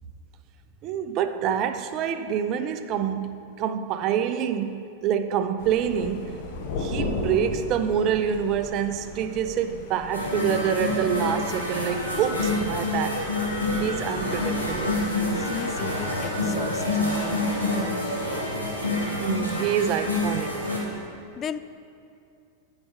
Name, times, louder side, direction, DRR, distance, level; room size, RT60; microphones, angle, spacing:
voice 1, 0.8-6.3 6.8-13.3 13.8-15.0 19.2-20.7, right 8 dB, 40° right, 0.5 m, -27 dB
Thunder, 5.6-21.1, left 2 dB, 50° left, 1.2 m, -39 dB
sound 1, 10.1-20.8, left 2 dB, 85° left, 2.3 m, -27 dB
voice 2, 15.3-17.2 21.4-21.6, left 8 dB, 25° left, 0.3 m, -35 dB
8.6 x 5.0 x 6.9 m
figure-of-eight pair, 90°, 0 cm